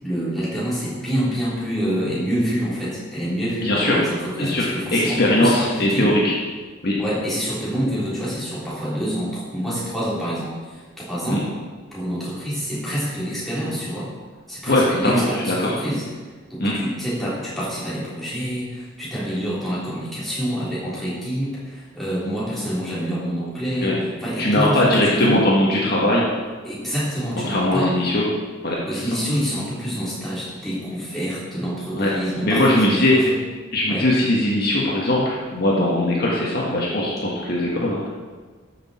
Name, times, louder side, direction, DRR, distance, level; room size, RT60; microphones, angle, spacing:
voice 1, 0.0-6.1 7.0-10.6 11.1-11.4 11.9-14.1 14.5-16.0 16.5-23.9 24.2-25.4 26.7-27.9 28.9-33.4 33.9-34.1, equal, ahead, -10 dB, 3.6 m, -27 dB
voice 2, 3.6-4.0 4.4-6.3 6.8-7.0 11.3-11.4 14.7-15.8 16.6-16.7 23.8-24.0 24.4-26.3 27.5-28.2 28.6-28.8 31.9-32.1 32.4-33.2 33.7-38.1, left 1 dB, 50° left, -4 dB, 1.6 m, -20 dB
13.0 x 6.2 x 4.4 m, 1.4 s
head